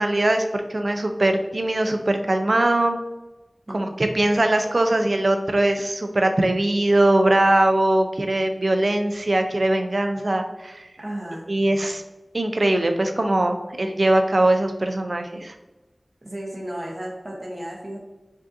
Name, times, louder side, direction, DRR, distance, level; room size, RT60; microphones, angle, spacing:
voice 1, 0.0-3.0 3.7-10.8 11.5-12.0 12.3-15.6, right 1 dB, 65° right, 6 dB, 0.4 m, -21 dB
voice 2, 11.0-11.4 16.2-18.0, right 1 dB, 45° right, -2 dB, 0.8 m, -33 dB
5.0 x 2.6 x 2.5 m, 1.1 s
wide cardioid pair, 50°, 0 cm